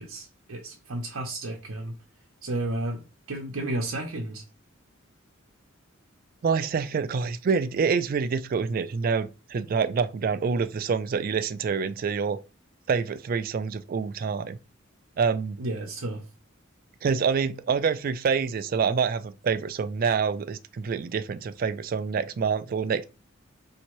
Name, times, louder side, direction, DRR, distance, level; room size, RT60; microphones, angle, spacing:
voice 1, 0.0-1.9 2.4-3.0 3.3-4.4 15.6-16.2, right 1 dB, 85° right, 0.7 m, -32 dB
voice 2, 6.4-12.4 12.9-14.6 15.2-15.6 17.0-23.0, right 5 dB, 45° right, 0.3 m, -26 dB
4.4 x 2.7 x 3.0 m
head